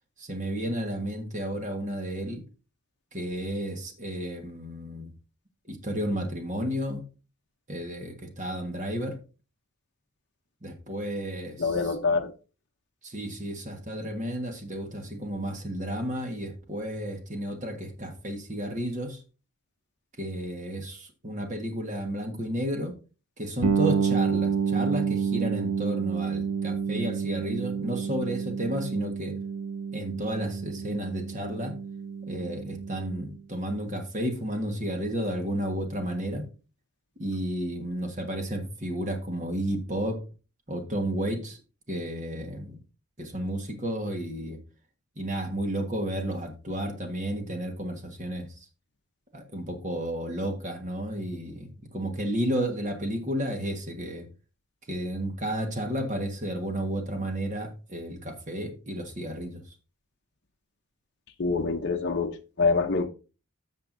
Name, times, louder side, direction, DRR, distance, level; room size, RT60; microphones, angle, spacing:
voice 1, 0.2-2.4 3.1-5.1 5.7-7.0 7.7-9.2 10.6-11.7 13.0-19.2 20.2-23.0 23.4-29.4 29.9-31.7 32.3-36.4 37.2-40.2 40.7-41.6 41.9-42.8 43.2-44.6 45.2-48.5 49.3-54.2 54.9-59.6, right 1 dB, 35° right, 1.5 m, -32 dB
voice 2, 11.6-12.3 61.4-63.1, left 4 dB, 50° left, 0.8 m, -25 dB
sound 1, 23.6-33.3, right 6 dB, 85° right, 0.8 m, -29 dB
13.5 x 6.7 x 2.7 m
head